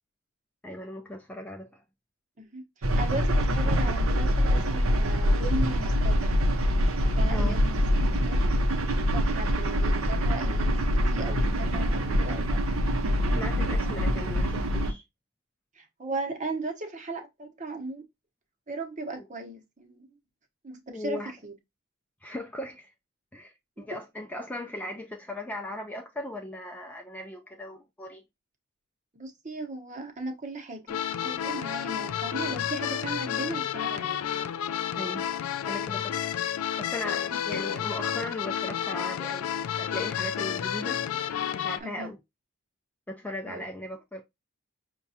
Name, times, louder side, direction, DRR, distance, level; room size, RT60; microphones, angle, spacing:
voice 1, 0.6-1.8 7.3-7.6 13.3-15.0 19.2-19.3 20.9-21.3 22.2-22.9 23.3-28.2 35.0-35.2 35.7-36.2 36.8-39.5 39.8-41.0 41.5-42.2 43.1-44.2, left 1 dB, 10° left, 0.3 m, -38 dB
voice 2, 2.4-6.4 7.1-7.8 8.2-8.5 9.1-10.8 11.1-12.8 15.8-18.0 18.7-20.2 20.6-21.5 29.1-34.2 41.8-42.1 43.4-43.6, right 2 dB, 35° right, 0.8 m, -37 dB
sound 1, 2.8-14.9, equal, 75° right, 0.6 m, -25 dB
sound 2, 30.9-41.8, left 9 dB, 90° left, 0.3 m, -31 dB
5.7 x 2.2 x 2.7 m
head